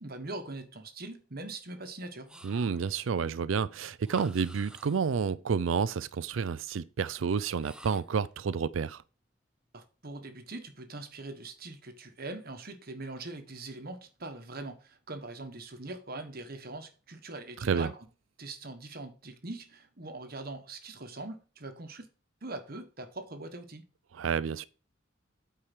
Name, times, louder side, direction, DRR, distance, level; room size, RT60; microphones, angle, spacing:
voice 1, 0.0-2.3 9.7-18.1 18.4-22.1 22.4-23.8, right 2 dB, 50° right, 1.3 m, -42 dB
sound 1, 2.3-3.0 4.0-5.2 7.6-8.3, right 1 dB, 5° right, 0.6 m, -51 dB
voice 2, 2.4-9.0 17.6-17.9 24.1-24.7, right 6 dB, 80° right, 0.4 m, -30 dB
8.7 x 4.8 x 6.0 m
head